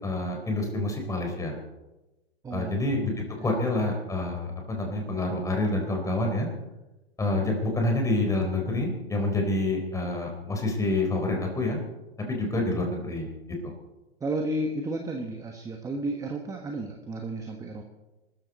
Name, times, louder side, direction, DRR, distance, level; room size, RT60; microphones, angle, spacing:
voice 1, 0.0-1.5 2.5-3.1 3.4-6.5 7.2-11.8 12.3-13.7, left 2 dB, 10° left, 2 dB, 3.9 m, -27 dB
voice 2, 2.4-2.8 3.4-3.6 14.2-17.8, right 1 dB, 10° right, 3 dB, 1.3 m, -32 dB
23.0 x 14.0 x 4.2 m, 1.1 s
hypercardioid pair, 135°, 32 cm